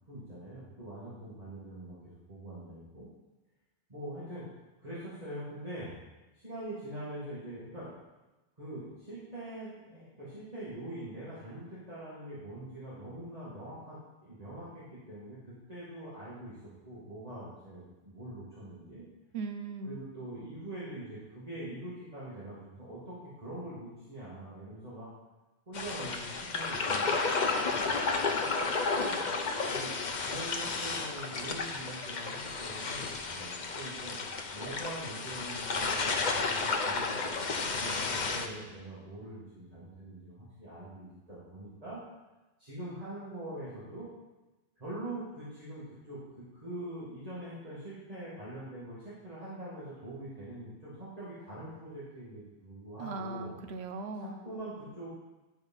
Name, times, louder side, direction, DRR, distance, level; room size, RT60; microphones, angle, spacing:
voice 1, 0.1-3.1 3.9-4.5 4.8-5.9 6.3-7.9 8.6-19.0 19.8-25.1 25.7-28.7 28.9-29.4 29.6-30.0 30.3-34.2 34.5-37.5 37.7-42.0 42.6-44.1 44.8-53.6 54.2-55.1, right 1 dB, 35° right, -11 dB, 2.5 m, -44 dB
voice 2, 19.3-20.0 53.0-54.4, right 3 dB, 75° right, 7 dB, 1.1 m, -38 dB
sound 1, 25.7-38.5, left 4 dB, 45° left, 0.9 m, -32 dB
11.5 x 4.9 x 5.6 m, 1.1 s
omnidirectional pair, 1.1 m